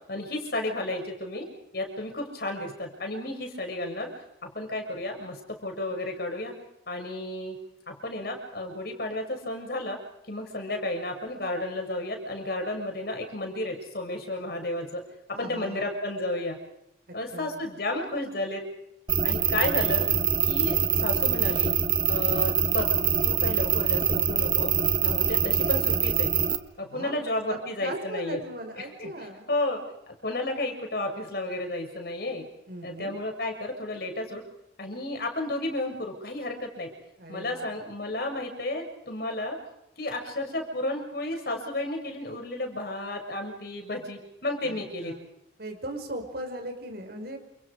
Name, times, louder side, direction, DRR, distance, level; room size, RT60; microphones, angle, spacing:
voice 1, 0.1-1.5 1.7-4.1 4.4-6.5 6.9-7.6 7.9-10.0 10.3-15.0 15.3-16.6 17.1-18.6 19.2-20.1 20.4-21.7 22.1-22.9 23.2-24.7 25.0-26.3 26.8-28.4 28.8-29.8 30.2-32.5 32.8-34.4 34.8-36.9 37.3-39.6 40.0-45.2, left 1 dB, 55° left, 3 dB, 6.9 m, -32 dB
voice 2, 15.3-15.9 17.1-17.6 26.8-29.5 32.7-33.2 37.2-37.7 44.6-45.2 45.6-47.4, right 1 dB, 55° right, 5 dB, 5.5 m, -39 dB
sound 1, 19.1-26.6, right 7 dB, 25° right, 1.7 m, -24 dB
29.0 x 29.0 x 5.1 m, 0.82 s
head